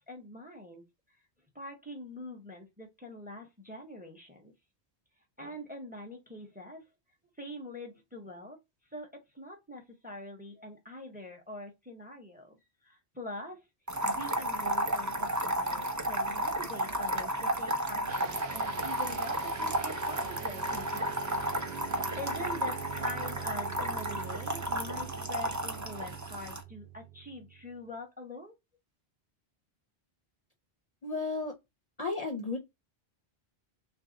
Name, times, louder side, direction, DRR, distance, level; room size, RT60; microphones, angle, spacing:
voice 1, 0.1-0.8 1.5-4.5 5.4-6.9 7.4-8.6 8.9-13.7 14.0-21.1 21.6-28.5, left 1 dB, 10° right, 0.8 m, -44 dB
sound 1, 13.9-26.6, right 1 dB, 25° right, 0.4 m, -33 dB
sound 2, 18.1-27.8, right 10 dB, 70° right, 0.8 m, -44 dB
voice 2, 31.0-31.5 32.0-32.6, left 3 dB, 45° left, 0.6 m, -33 dB
3.2 x 2.6 x 3.7 m
omnidirectional pair, 1.1 m